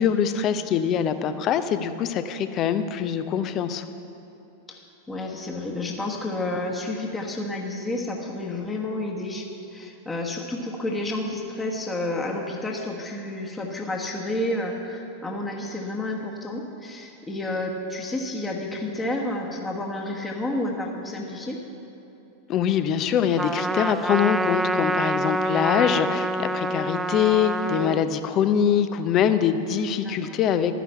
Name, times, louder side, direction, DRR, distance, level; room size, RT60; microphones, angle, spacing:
voice 1, 0.0-3.8 22.5-30.7, left 8 dB, 35° left, 11 dB, 0.6 m, -23 dB
voice 2, 5.1-21.6 24.7-24.9 30.0-30.4, left 1 dB, 15° left, 0 dB, 1.3 m, -30 dB
Trumpet, 23.4-28.0, right 1 dB, 10° right, 0.4 m, -26 dB
13.0 x 10.0 x 5.7 m, 2.9 s
figure-of-eight pair, 90°, 0 cm